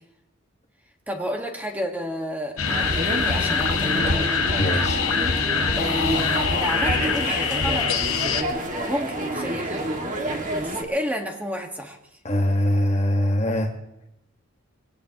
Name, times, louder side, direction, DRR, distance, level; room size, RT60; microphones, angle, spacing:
voice 1, 1.1-4.0 5.7-7.9 8.9-9.9 10.5-12.0, equal, 10° right, 2 dB, 1.5 m, -31 dB
sound 1, 2.6-8.4, left 5 dB, 85° left, 1.3 m, -24 dB
sound 2, 2.6-10.8, right 1 dB, 35° right, 2.0 m, -29 dB
voice 2, 4.6-5.0 12.2-13.7, left 1 dB, 30° left, 4 dB, 1.4 m, -22 dB
22.5 x 17.5 x 3.0 m, 0.88 s
head